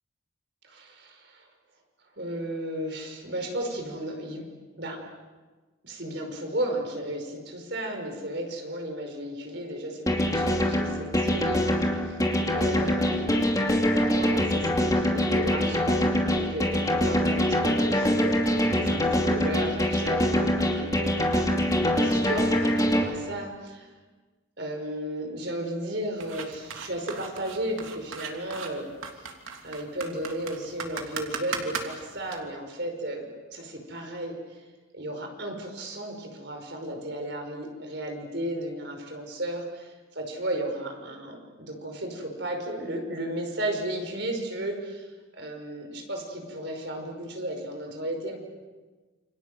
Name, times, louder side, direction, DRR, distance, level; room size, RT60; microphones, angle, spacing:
voice 1, 0.6-1.5 2.2-4.4 4.8-5.0 5.8-21.6 22.0-23.9 24.6-28.9 29.6-34.6 34.9-48.4, right 1 dB, 55° right, 3 dB, 5.3 m, -34 dB
sound 1, 10.1-23.0, equal, 15° left, 2.6 m, -24 dB
sound 2, 26.2-32.4, right 5 dB, 85° right, 3.2 m, -37 dB
28.5 x 25.5 x 7.7 m, 1.3 s
head